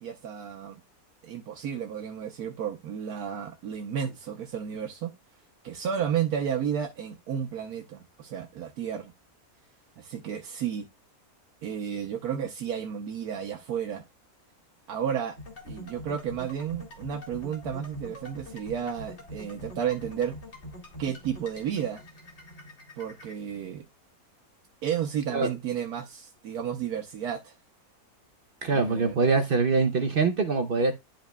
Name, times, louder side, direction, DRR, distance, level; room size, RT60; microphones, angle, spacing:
voice 1, 0.0-0.8 1.2-5.1 5.6-9.1 10.0-10.9 11.6-14.0 14.9-15.4 15.6-20.3 21.0-22.0 23.0-23.8 24.8-27.5 28.7-29.2, right 8 dB, 75° right, 1.3 m, -32 dB
sound 1, 15.4-23.3, left 1 dB, 45° left, 2.3 m, -44 dB
voice 2, 28.6-30.9, right 4 dB, 50° right, 0.7 m, -24 dB
11.5 x 5.2 x 2.2 m
omnidirectional pair, 1.6 m